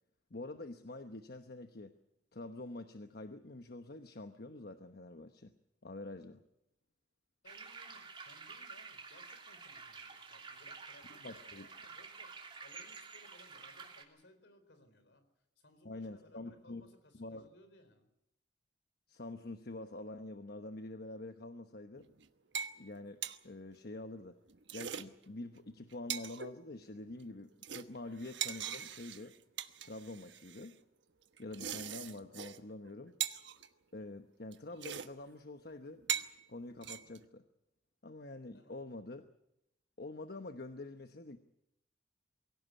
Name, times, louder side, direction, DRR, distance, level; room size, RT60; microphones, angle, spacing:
voice 1, 0.3-1.9 2.3-5.5 5.8-6.4 11.2-11.7 15.8-16.8 17.1-17.5 19.1-22.1 22.8-24.4 24.7-29.3 29.8-30.7 31.4-33.1 33.9-36.0 36.5-37.4 38.0-39.2 40.0-41.4, left 2 dB, 60° left, 8 dB, 1.1 m, -46 dB
voice 2, 7.4-15.3 15.6-18.1 38.5-38.8, left 1 dB, 75° left, 10 dB, 4.3 m, -63 dB
sound 1, 7.5-14.0, right 5 dB, 30° right, 3.2 m, -50 dB
sound 2, 22.0-22.2 22.5-22.8 23.0-23.4 24.5-25.0 25.5-25.6 25.9-26.5 27.0-27.3 27.6-30.7 31.4-32.6 32.8-32.9 33.2-33.7 34.5-34.6 34.8-35.1 35.3-35.4 36.0-36.3 36.8-37.2, right 8 dB, 85° right, 1.2 m, -40 dB
23.5 x 16.5 x 8.4 m, 0.83 s
head